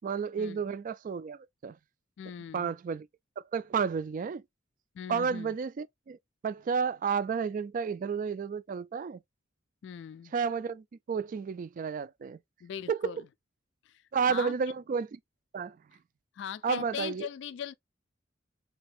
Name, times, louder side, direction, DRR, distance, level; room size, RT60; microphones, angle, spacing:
voice 1, 0.0-1.8 2.5-3.1 3.4-4.4 5.1-6.2 6.4-9.2 10.3-12.4 12.9-13.2 14.1-15.2 15.5-15.8 16.6-17.3, right 6 dB, 45° right, 0.3 m, -31 dB
voice 2, 2.2-2.7 4.9-5.6 9.8-10.3 12.6-13.3 13.9-14.0 14.3-14.6 16.4-17.7, left 8 dB, 65° left, 0.3 m, -40 dB
3.4 x 3.3 x 3.3 m
head